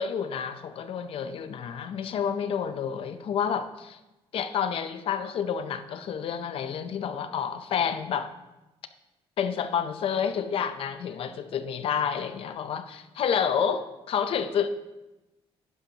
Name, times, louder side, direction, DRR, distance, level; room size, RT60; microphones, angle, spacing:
voice 1, 0.0-4.0 4.3-8.3 9.4-14.7, left 7 dB, 60° left, 10 dB, 0.7 m, -29 dB
11.0 x 10.5 x 2.9 m, 1.0 s
cardioid pair, 140°, 11 cm